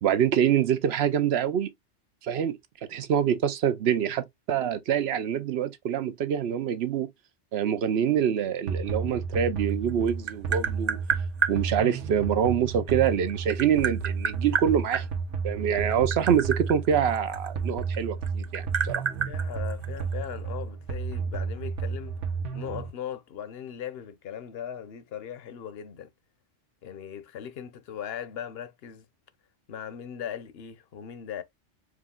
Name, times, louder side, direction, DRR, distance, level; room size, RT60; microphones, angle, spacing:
voice 1, 0.0-1.7 2.2-2.6 2.9-7.1 7.5-11.0 11.5-15.1 15.4-19.0, right 9 dB, 65° right, 0.8 m, -25 dB
sound 1, 8.7-22.9, right 5 dB, 85° right, 1.3 m, -32 dB
Tap, 9.7-11.6 12.9-15.0 15.8-18.0 18.3-20.3, right 6 dB, 45° right, 0.3 m, -29 dB
voice 2, 19.2-22.2 22.5-26.1 26.8-29.0 29.7-31.4, left 9 dB, 60° left, 0.8 m, -39 dB
4.8 x 2.3 x 3.6 m
omnidirectional pair, 1.2 m